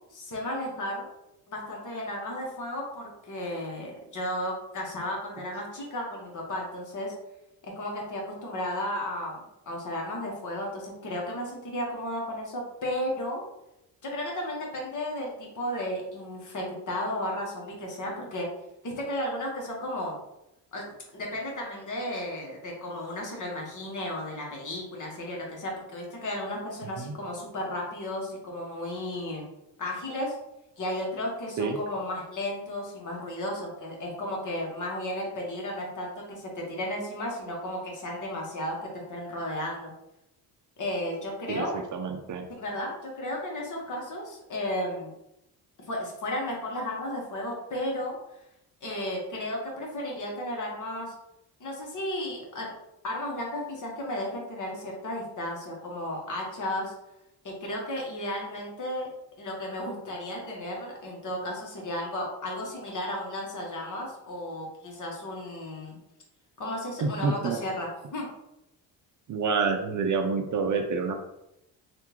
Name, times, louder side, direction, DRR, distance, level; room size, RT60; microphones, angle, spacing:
voice 1, 0.1-1.1 1.5-7.1 7.6-13.4 14.0-18.5 18.8-20.2 20.7-20.9 21.1-29.5 29.8-30.3 30.8-39.9 40.8-41.8 42.5-45.1 45.9-48.2 48.8-51.1 51.6-52.7 53.0-56.9 57.4-59.1 59.4-66.0 66.6-68.3, left 1 dB, 45° left, -1 dB, 1.2 m, -34 dB
voice 2, 41.5-42.5 67.0-67.6 69.3-71.1, right 4 dB, 45° right, 4 dB, 0.5 m, -28 dB
3.5 x 2.6 x 2.9 m, 0.87 s
cardioid pair, 80°, 43 cm